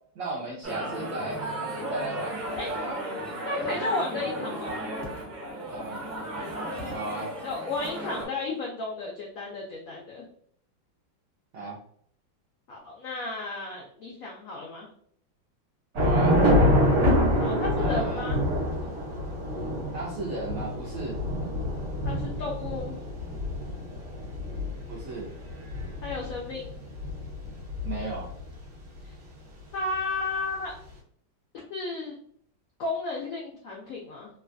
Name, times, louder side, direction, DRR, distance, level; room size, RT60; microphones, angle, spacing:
voice 1, 0.2-1.4 1.9-3.0 5.6-6.2 6.9-7.3 11.5-11.8 16.0-16.4 17.7-18.3 19.9-21.2 24.9-25.3 27.8-28.3, right 2 dB, 75° right, -3 dB, 0.7 m, -35 dB
sound 1, 0.6-8.2, right 1 dB, 35° right, 0.8 m, -34 dB
voice 2, 3.4-4.8 7.4-10.2 12.7-14.9 17.4-18.4 22.0-23.0 26.0-26.7 29.7-30.8 31.7-32.2 32.8-34.3, left 3 dB, 80° left, -2 dB, 0.7 m, -33 dB
Thunder / Rain, 15.9-28.5, equal, 50° right, 1.1 m, -26 dB
3.1 x 2.2 x 2.5 m, 0.62 s
omnidirectional pair, 2.0 m